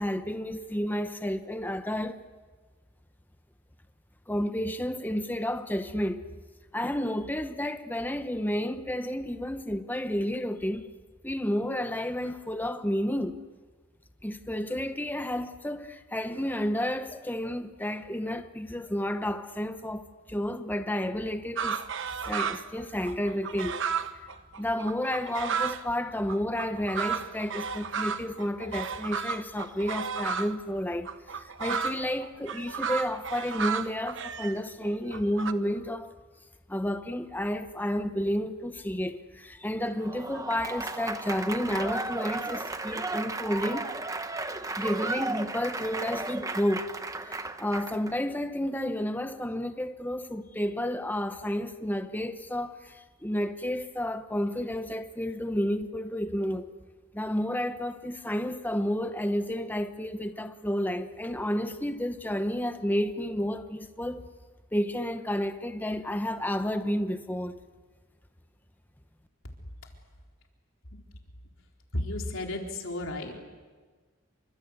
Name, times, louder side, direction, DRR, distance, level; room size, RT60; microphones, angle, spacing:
voice 1, 0.0-2.2 4.3-6.3 6.7-10.9 11.2-13.4 14.2-20.0 20.3-21.8 22.3-23.8 24.6-31.1 31.3-36.1 36.7-43.9 44.7-46.9 47.2-56.7 57.1-64.2 64.7-67.6, equal, 10° left, 1.0 m, -31 dB
sound 1, 21.6-22.8 23.0-25.8 26.3-30.5 31.0-35.5, right 6 dB, 60° right, 1.1 m, -33 dB
Applause / Crowd, 39.9-48.1, right 3 dB, 15° right, 1.0 m, -34 dB
voice 2, 71.9-73.4, left 1 dB, 65° left, 4.2 m, -33 dB
28.0 x 25.5 x 8.2 m
head